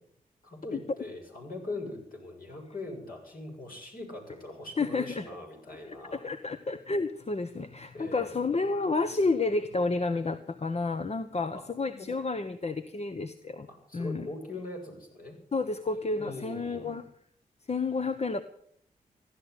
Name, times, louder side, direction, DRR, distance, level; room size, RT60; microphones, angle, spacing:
voice 1, 0.4-6.2 7.9-8.4 11.5-12.1 13.7-15.4 16.2-17.0, left 2 dB, 65° left, 0 dB, 7.0 m, -41 dB
voice 2, 4.8-5.2 5.8-13.7 13.9-14.3 15.5-17.1 17.7-18.4, left 3 dB, 40° left, 10 dB, 1.1 m, -30 dB
15.5 x 11.0 x 8.2 m, 0.69 s
cardioid pair, 45°, 16 cm